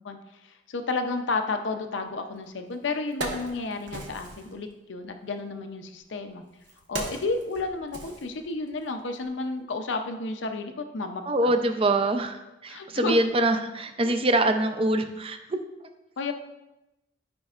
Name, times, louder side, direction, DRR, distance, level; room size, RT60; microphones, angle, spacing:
voice 1, 0.4-6.4 6.9-11.5 12.7-13.2 16.2-16.3, left 3 dB, 80° left, 6 dB, 0.6 m, -32 dB
Wood, 2.4-2.5 2.9-4.5 5.5-8.8 9.1-9.3, right 2 dB, 70° right, 1.2 m, -38 dB
voice 2, 11.3-15.6, right 1 dB, 30° right, 7 dB, 0.5 m, -24 dB
12.5 x 5.2 x 2.5 m, 0.99 s
head